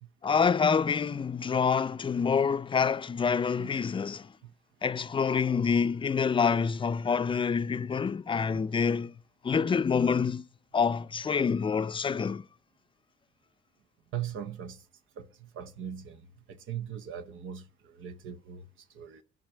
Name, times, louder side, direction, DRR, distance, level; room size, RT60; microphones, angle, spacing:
voice 1, 0.2-4.3 4.8-9.1 9.4-10.5 10.7-12.4, left 6 dB, 25° left, 0.5 m, -27 dB
voice 2, 14.1-14.9 15.2-19.2, right 9 dB, 80° right, 0.8 m, -40 dB
11.5 x 5.4 x 8.6 m
cardioid pair, 90°, 20 cm